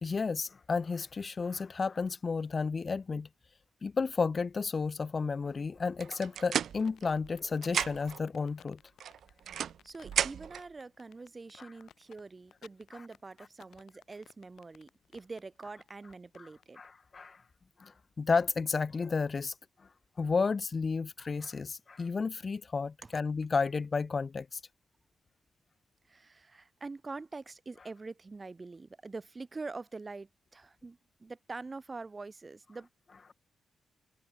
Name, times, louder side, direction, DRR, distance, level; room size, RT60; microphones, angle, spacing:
voice 1, 0.0-3.3 3.8-8.8 16.8-17.4 17.8-19.5 20.2-24.6, left 4 dB, 30° left, 1.0 m, -32 dB
sound 1, 6.0-7.4 7.6-8.2 9.0-10.7, right 9 dB, 65° right, 0.6 m, -34 dB
tablet standby loop, 6.7-16.7, left 10 dB, 80° left, 6.2 m, -59 dB
voice 2, 9.8-16.8 23.0-23.1 26.1-32.9, right 3 dB, 20° right, 1.9 m, -45 dB
wide cardioid pair, 180°, 0 cm